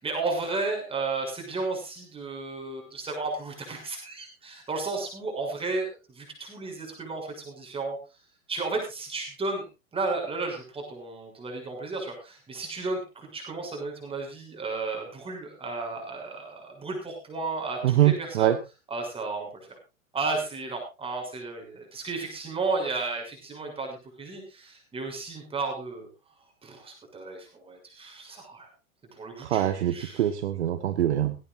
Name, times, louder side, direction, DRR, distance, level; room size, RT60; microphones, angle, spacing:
voice 1, 0.0-5.9 6.1-8.0 8.5-9.7 9.9-18.5 18.9-19.8 20.1-26.1 26.6-28.7 29.2-30.3, right 3 dB, 15° right, 2 dB, 6.7 m, -33 dB
voice 2, 17.8-18.6 29.4-31.3, right 12 dB, 50° right, 11 dB, 1.3 m, -24 dB
17.5 x 17.5 x 2.6 m, 0.29 s
figure-of-eight pair, 100°, 42 cm